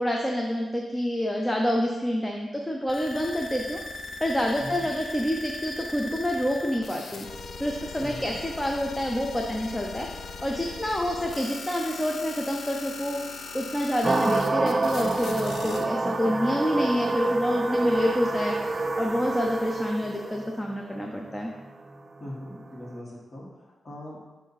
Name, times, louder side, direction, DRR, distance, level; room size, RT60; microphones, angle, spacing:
voice 1, 0.0-7.3 7.6-10.1 10.4-21.5, equal, 10° left, 1 dB, 0.6 m, -28 dB
sound 1, 2.9-15.8, left 3 dB, 75° left, 0.6 m, -39 dB
voice 2, 8.0-8.3 22.2-24.2, left 1 dB, 35° left, -4 dB, 1.8 m, -40 dB
sound 2, 14.0-22.9, right 2 dB, 35° right, 0.4 m, -27 dB
6.9 x 2.7 x 5.7 m, 1.2 s
cardioid pair, 80°, 0 cm